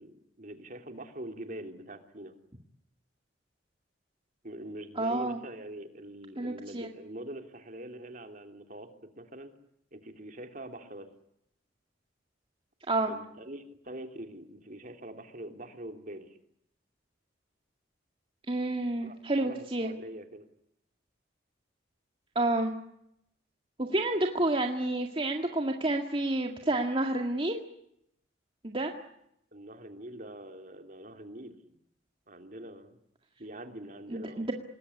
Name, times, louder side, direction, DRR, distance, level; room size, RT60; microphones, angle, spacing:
voice 1, 0.0-2.3 4.4-9.5 9.9-11.1 13.1-16.4 19.0-20.5 29.5-31.6 32.3-33.0 33.4-34.5, right 1 dB, 45° right, 6 dB, 3.3 m, -44 dB
voice 2, 5.0-5.4 6.4-6.9 12.9-13.1 18.5-19.9 22.4-22.7 23.8-27.6 28.6-28.9 34.1-34.5, right 2 dB, 30° right, 3 dB, 2.0 m, -29 dB
27.0 x 20.5 x 9.9 m, 0.78 s
head